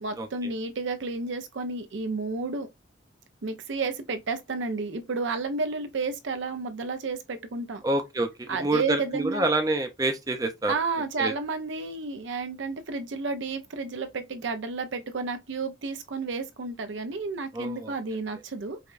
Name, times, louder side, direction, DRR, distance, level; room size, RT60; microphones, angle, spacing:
voice 1, 0.0-2.7 3.4-7.8 8.5-9.5 10.7-18.8, right 3 dB, 75° right, 0.5 m, -31 dB
voice 2, 7.8-10.7 11.2-11.3 17.5-17.9, right 2 dB, 20° right, 0.5 m, -27 dB
4.8 x 2.2 x 2.5 m
head